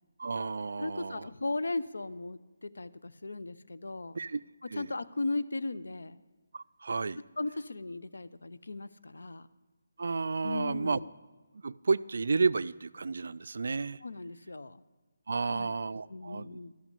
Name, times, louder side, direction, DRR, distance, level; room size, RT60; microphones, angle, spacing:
voice 1, 0.2-1.3 4.1-4.4 4.7-4.9 6.5-7.2 10.0-11.0 11.6-14.0 15.3-16.5, right 4 dB, 65° right, 17 dB, 0.3 m, -31 dB
voice 2, 0.8-4.2 4.6-6.2 7.4-9.5 10.4-11.1 14.0-14.8 15.4-15.8 16.1-16.7, left 2 dB, 90° left, 14 dB, 0.6 m, -37 dB
12.5 x 6.1 x 8.3 m, 1.3 s
hypercardioid pair, 170°, 0 cm